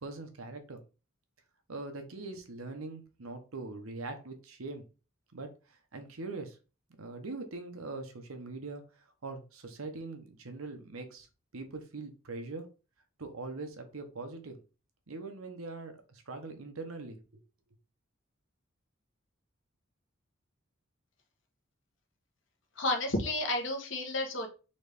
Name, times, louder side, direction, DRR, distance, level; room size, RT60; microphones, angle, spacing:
voice 1, 0.0-0.8 1.7-4.8 5.3-6.6 7.0-8.9 9.2-11.3 11.5-12.7 13.2-14.6 15.1-17.4, right 3 dB, 85° right, 6 dB, 0.9 m, -42 dB
voice 2, 22.8-24.5, left 2 dB, 60° left, 2 dB, 1.1 m, -31 dB
4.1 x 3.1 x 3.4 m, 0.33 s
head